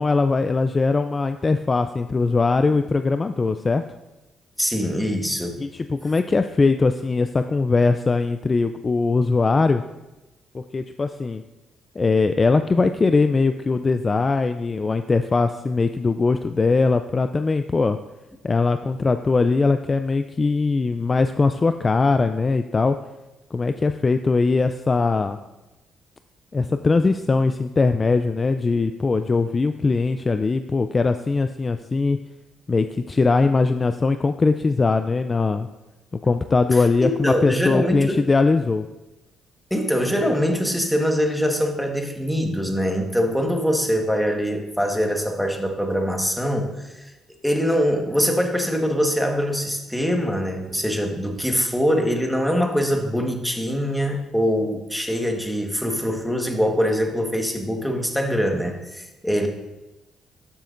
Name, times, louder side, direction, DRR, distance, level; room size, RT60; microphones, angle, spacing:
voice 1, 0.0-3.8 5.6-9.8 10.5-11.4 12.0-18.0 18.4-23.0 23.5-25.4 26.5-32.2 32.7-35.7 36.2-38.9, left 3 dB, 30° left, 9 dB, 0.3 m, -21 dB
voice 2, 4.6-5.6 36.7-38.2 39.7-47.1 47.4-59.5, equal, ahead, 3 dB, 1.4 m, -23 dB
12.5 x 7.5 x 2.5 m, 1.0 s
cardioid pair, 90°, 0 cm